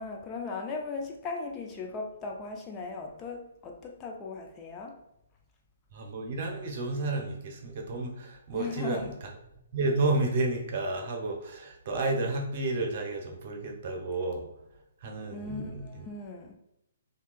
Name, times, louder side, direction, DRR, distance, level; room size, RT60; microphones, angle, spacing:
voice 1, 0.0-5.0 8.5-9.1 15.3-16.6, left 4 dB, 20° left, 1 dB, 0.4 m, -38 dB
voice 2, 5.9-9.1 9.7-14.5 15.0-16.0, right 2 dB, 50° right, 2 dB, 0.8 m, -31 dB
3.6 x 2.7 x 2.4 m, 0.83 s
figure-of-eight pair, 130°, 0 cm